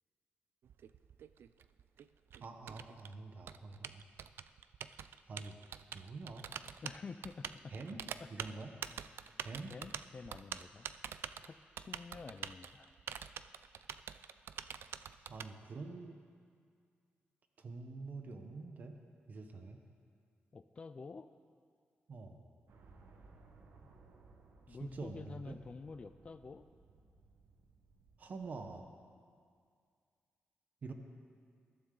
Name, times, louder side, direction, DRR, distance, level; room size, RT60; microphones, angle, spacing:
Typing, 0.6-15.5, right 8 dB, 70° right, 0.4 m, -46 dB
voice 1, 2.4-4.0 5.3-5.6 5.9-6.4 7.7-8.0 8.3-8.7 9.4-9.7 15.3-16.2 17.6-19.0 19.3-19.8 22.1-22.4 24.7-25.6 28.2-28.9 30.8-30.9, right 3 dB, 45° right, 5 dB, 1.0 m, -46 dB
voice 2, 6.8-7.7 8.2-8.3 9.7-10.9 11.4-12.9 20.5-21.3 24.7-26.7, left 4 dB, 30° left, 10 dB, 0.4 m, -49 dB
sound 1, 22.7-28.9, right 3 dB, 85° right, 1.3 m, -62 dB
20.0 x 12.0 x 3.9 m, 2.2 s
wide cardioid pair, 160°, 4 cm